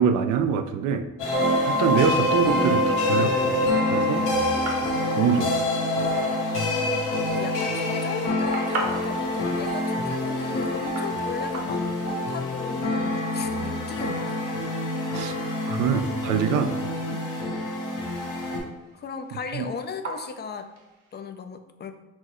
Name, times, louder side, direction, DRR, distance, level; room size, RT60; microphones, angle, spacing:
voice 1, 0.0-4.3 5.2-5.5 15.1-15.3 15.7-16.7 19.5-19.6, right 7 dB, 85° right, 9 dB, 0.5 m, -25 dB
sound 1, 1.2-18.6, left 2 dB, 80° left, 1.0 m, -27 dB
sound 2, 1.3-12.8 13.0-13.5 14.1-14.3 14.6-14.7 15.3-15.4, equal, 35° right, 0.5 m, -29 dB
sound 3, 1.7-21.2, right 3 dB, 55° right, 1.0 m, -43 dB
voice 2, 7.2-14.4 17.1-17.3 18.9-20.7 21.1-21.9, left 6 dB, 35° left, 8 dB, 0.4 m, -36 dB
4.4 x 3.1 x 3.0 m, 0.98 s
cardioid pair, 90°, 30 cm